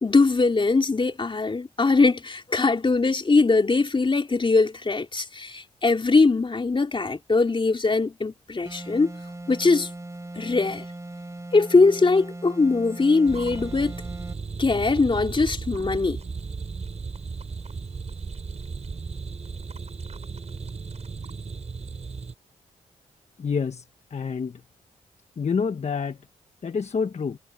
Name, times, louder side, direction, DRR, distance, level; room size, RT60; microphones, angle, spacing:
voice 1, 0.0-9.1 9.5-9.9 10.4-10.8 11.5-14.0 14.6-16.2, left 3 dB, 35° left, 3.7 m, -21 dB
sound 1, 8.6-14.4, right 2 dB, 20° right, 5.0 m, -39 dB
sound 2, 13.3-22.3, right 4 dB, 50° right, 6.9 m, -35 dB
voice 2, 23.4-23.8 24.1-24.6 25.4-26.2 26.6-27.4, left 5 dB, 50° left, 1.3 m, -27 dB
supercardioid pair, 45°, 14 cm